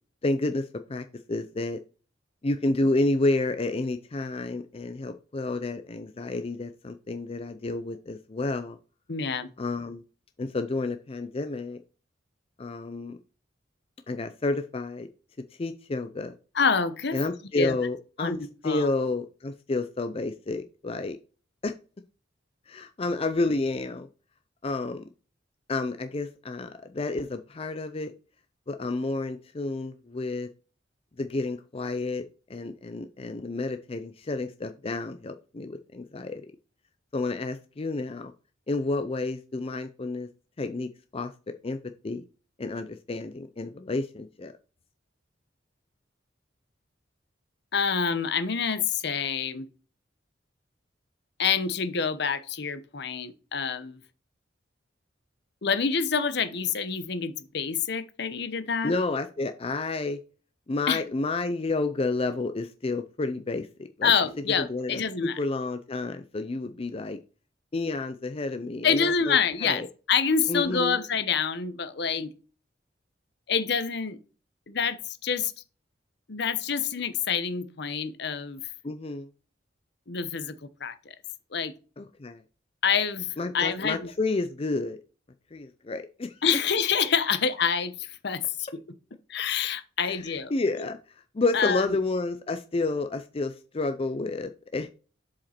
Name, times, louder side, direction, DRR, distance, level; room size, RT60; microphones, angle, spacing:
voice 1, 0.2-1.8 2.4-8.8 9.6-10.0 10.4-11.8 12.6-13.2 14.1-15.1 15.6-16.3 17.1-18.4 18.6-21.2 21.6-21.7 22.7-24.1 24.6-25.0 25.7-28.1 28.7-30.5 31.2-32.2 32.5-36.4 37.1-38.3 38.7-40.3 40.6-41.8 42.0-42.2 42.6-44.5 58.8-60.2 60.7-64.1 64.6-67.2 67.7-69.4 69.6-69.9 70.5-71.0 78.8-79.3 82.0-82.4 83.4-85.0 85.5-86.4 90.0-91.0 91.3-94.9, left 2 dB, 30° left, 0.5 m, -30 dB
voice 2, 9.1-9.5 16.5-17.2 17.5-17.7 18.2-18.9 47.7-49.7 51.4-54.0 55.6-58.9 60.9-61.0 64.0-65.4 68.8-69.8 70.1-72.3 73.5-74.2 74.7-75.5 76.3-78.6 80.1-81.2 81.5-81.7 82.8-84.1 86.4-88.8 89.3-90.5 91.5-92.0, left 6 dB, 65° left, 0.9 m, -27 dB
7.4 x 4.9 x 4.3 m
head